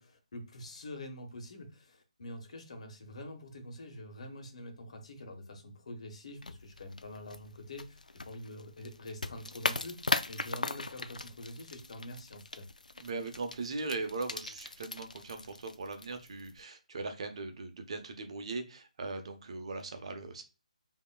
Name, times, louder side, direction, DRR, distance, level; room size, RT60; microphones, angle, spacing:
voice 1, 0.0-12.7, left 1 dB, 55° left, 5 dB, 1.2 m, -46 dB
sound 1, 6.4-16.6, left 3 dB, 90° left, 0.4 m, -39 dB
voice 2, 13.0-20.4, right 3 dB, 50° right, 6 dB, 0.9 m, -39 dB
5.3 x 2.9 x 2.3 m, 0.31 s
figure-of-eight pair, 150°, 4 cm